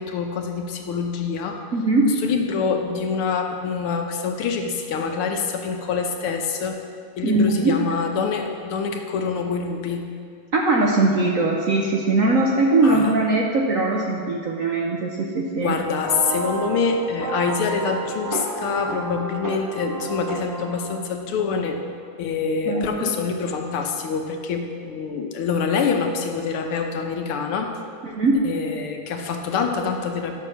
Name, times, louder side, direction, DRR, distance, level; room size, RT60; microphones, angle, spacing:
voice 1, 0.0-1.6 2.2-6.8 7.2-10.1 12.8-13.1 15.6-21.8 22.2-27.7 28.4-30.3, left 5 dB, 85° left, 4 dB, 1.9 m, -25 dB
voice 2, 1.7-2.1 7.2-7.7 10.5-15.8 22.7-23.1 28.0-28.4, right 2 dB, 55° right, -1 dB, 0.9 m, -20 dB
sound 1, 16.1-21.1, right 2 dB, 20° right, 0.6 m, -31 dB
11.5 x 6.7 x 6.0 m, 2.2 s
omnidirectional pair, 2.3 m